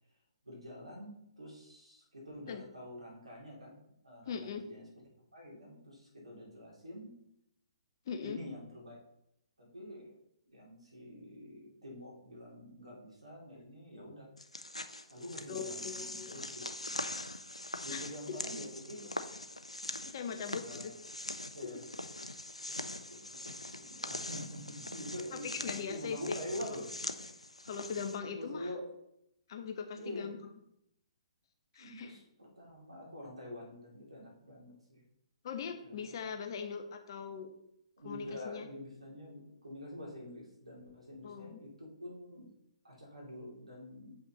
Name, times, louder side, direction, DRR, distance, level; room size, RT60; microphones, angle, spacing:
voice 1, 0.4-4.8 5.3-7.2 8.2-9.0 9.6-10.1 10.5-14.3 15.1-17.1 17.8-19.1 20.3-20.8 21.5-21.8 22.7-26.8 28.2-28.9 30.0-30.4 31.8-35.0 35.8-36.2 38.0-42.5 42.8-44.1, left 1 dB, 80° right, -3 dB, 2.8 m, -46 dB
voice 2, 4.3-4.6 8.1-8.4 15.5-16.4 17.9-18.1 20.1-20.9 25.4-26.4 27.6-28.7 29.5-30.4 31.7-32.1 35.4-37.5 38.0-38.7 41.2-41.6, left 6 dB, 45° left, 6 dB, 0.9 m, -40 dB
sound 1, 14.4-28.2, left 1 dB, 90° left, 0.5 m, -42 dB
7.7 x 5.5 x 3.0 m, 0.77 s
figure-of-eight pair, 125°, 3 cm